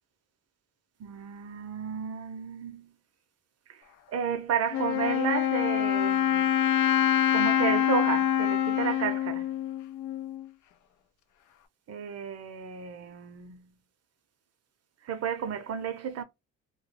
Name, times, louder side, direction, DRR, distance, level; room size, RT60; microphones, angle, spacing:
voice 1, 1.0-2.9 3.7-3.8 4.1-6.5 7.3-9.5 11.9-13.7 15.1-16.2, right 7 dB, 55° right, 0.7 m, -32 dB
Wind instrument woodwind instrument, 4.7-10.5, left 10 dB, 75° left, 0.5 m, -26 dB
2.2 x 2.2 x 3.2 m
cardioid pair, 90°, 30 cm